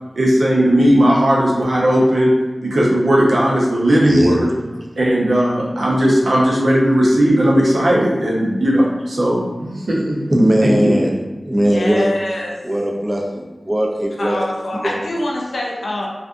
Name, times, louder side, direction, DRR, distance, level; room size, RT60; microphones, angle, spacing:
voice 1, 0.2-2.3 2.6-4.5 4.9-10.2 10.6-11.0, equal, 85° right, 0.6 m, -16 dB
voice 2, 4.1-4.4 10.3-11.1 11.4-12.1 12.6-14.4 14.7-15.0, equal, 25° right, 0.4 m, -18 dB
voice 3, 11.6-12.6 14.2-16.1, left 1 dB, 90° left, 0.4 m, -24 dB
2.5 x 2.5 x 2.3 m
wide cardioid pair, 75°, 0 cm